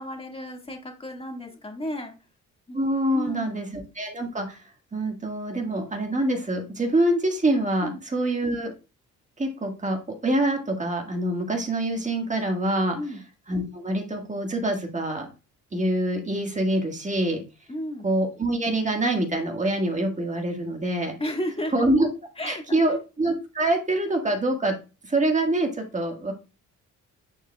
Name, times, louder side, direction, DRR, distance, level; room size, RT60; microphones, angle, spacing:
voice 1, 0.0-2.1 2.7-2.8 3.1-3.7 7.8-8.0 12.9-13.2 17.7-18.1 21.2-21.7 22.4-23.0, left 1 dB, 20° left, 2 dB, 1.9 m, -33 dB
voice 2, 2.7-4.6 4.9-8.7 9.4-13.0 13.5-15.3 15.7-17.4 18.0-21.2 21.7-22.1 22.4-24.7 25.0-26.3, right 1 dB, 25° right, 3 dB, 1.7 m, -25 dB
9.8 x 4.7 x 2.3 m, 0.30 s
cardioid pair, 90°, 30 cm